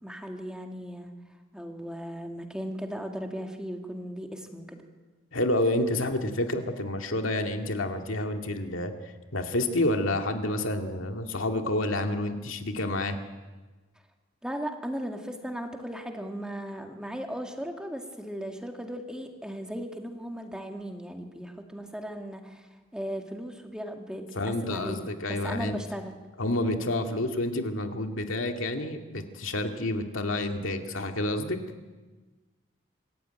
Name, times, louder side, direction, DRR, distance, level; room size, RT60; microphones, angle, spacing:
voice 1, 0.0-1.1 1.5-4.8 14.4-26.1, equal, 5° right, 3 dB, 2.1 m, -37 dB
voice 2, 5.3-13.2 24.4-25.8 26.4-31.6, left 1 dB, 85° left, 4 dB, 2.2 m, -29 dB
26.0 x 14.5 x 9.3 m, 1.3 s
head